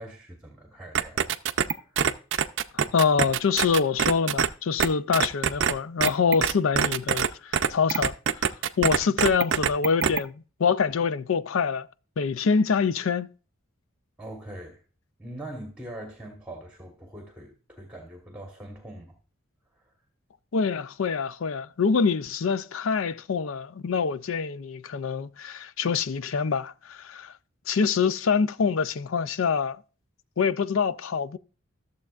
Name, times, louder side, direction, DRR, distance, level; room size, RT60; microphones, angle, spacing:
voice 1, 0.0-2.0 14.2-14.8 15.2-19.1 19.7-19.9, right 1 dB, 5° right, 1.2 m, -42 dB
sound 1, 1.0-4.5 4.8-4.9 5.1-5.7 6.0-7.3 7.5-10.2, right 7 dB, 55° right, 0.5 m, -23 dB
voice 2, 2.7-8.5 8.8-10.3 10.6-11.9 12.2-13.3 20.5-27.3 27.7-29.8 30.4-31.4, left 5 dB, 75° left, 0.5 m, -25 dB
14.0 x 7.1 x 2.4 m
head